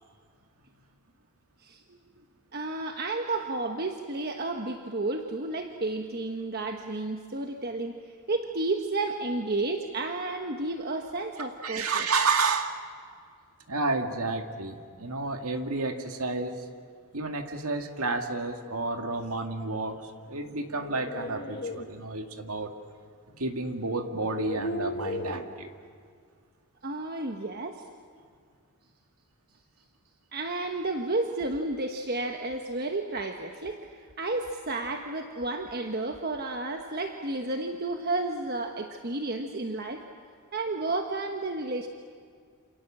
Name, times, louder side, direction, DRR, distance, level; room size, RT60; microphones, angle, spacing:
voice 1, 1.6-2.0 2.5-8.0 8.3-12.0 26.8-27.8 30.3-40.0 40.5-41.9, right 2 dB, 45° right, 4 dB, 1.2 m, -32 dB
voice 2, 11.6-12.8 13.7-16.7 17.1-22.7 23.4-25.7, right 3 dB, 75° right, 5 dB, 2.2 m, -30 dB
sound 1, 20.5-21.8 23.3-23.4 24.1-25.5, left 1 dB, 45° left, 1.6 m, -35 dB
28.0 x 27.0 x 7.5 m, 2.1 s
head